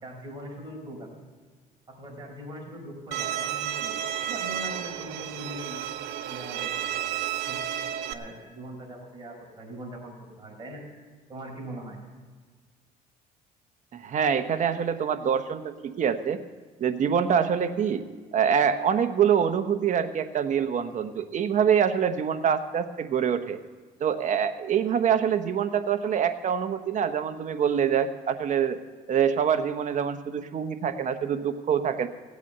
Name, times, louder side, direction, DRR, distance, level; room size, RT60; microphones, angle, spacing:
voice 1, 0.0-1.1 1.9-3.9 4.3-5.8 6.2-6.7 7.5-7.6 8.1-10.8 11.3-12.0, right 1 dB, 25° right, -1 dB, 4.9 m, -41 dB
Bowed string instrument, 3.1-8.1, right 11 dB, 80° right, 0.8 m, -32 dB
voice 2, 13.9-16.4 16.8-18.0 18.3-23.6 24.0-28.8 29.1-32.1, right 8 dB, 45° right, 9 dB, 1.0 m, -25 dB
16.5 x 8.4 x 6.7 m, 1.5 s
cardioid pair, 110°, 17 cm